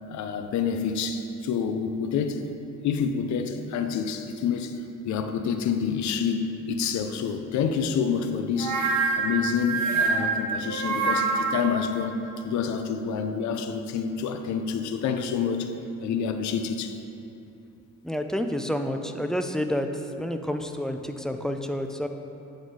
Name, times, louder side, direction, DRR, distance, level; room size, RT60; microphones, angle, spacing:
voice 1, 0.1-2.5 2.8-8.8 9.1-15.7 16.0-17.0, left 6 dB, 70° left, 7 dB, 0.5 m, -28 dB
sound 1, 8.6-11.7, right 4 dB, 75° right, 0.9 m, -25 dB
voice 2, 18.0-19.9 20.2-22.1, equal, ahead, 6 dB, 0.3 m, -29 dB
7.9 x 4.2 x 4.7 m, 2.7 s
cardioid pair, 90°, 30 cm